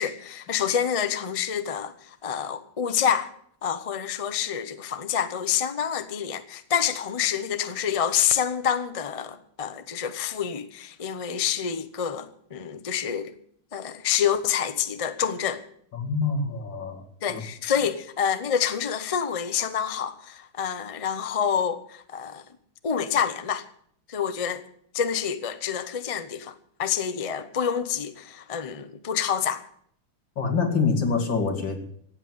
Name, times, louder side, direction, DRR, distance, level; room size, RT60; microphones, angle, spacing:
voice 1, 0.0-3.3 3.6-13.3 13.7-15.6 17.2-22.4 22.8-23.6 24.1-24.6 24.9-29.6, left 8 dB, 40° left, 0.5 m, -27 dB
voice 2, 15.9-17.0 17.3-17.4 30.4-31.8, left 4 dB, 85° left, 2.9 m, -25 dB
16.5 x 7.9 x 9.2 m
omnidirectional pair, 2.0 m